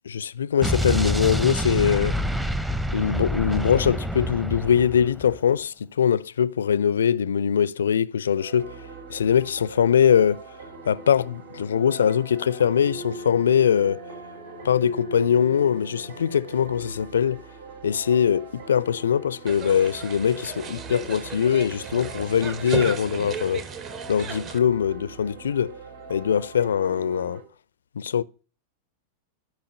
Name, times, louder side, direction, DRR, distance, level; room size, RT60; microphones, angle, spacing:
voice 1, 0.1-2.2 2.9-8.7 9.1-10.4 10.9-14.0 14.6-17.4 17.8-23.6 24.1-25.8 26.1-27.4 28.0-28.2, left 8 dB, 65° left, 0.5 m, -22 dB
Explosion, 0.6-5.4, equal, 5° right, 0.9 m, -27 dB
sound 1, 8.4-27.4, right 3 dB, 60° right, 3.2 m, -41 dB
sound 2, 19.5-24.6, right 7 dB, 30° right, 1.3 m, -35 dB
12.0 x 5.7 x 7.9 m
figure-of-eight pair, 90°, 0 cm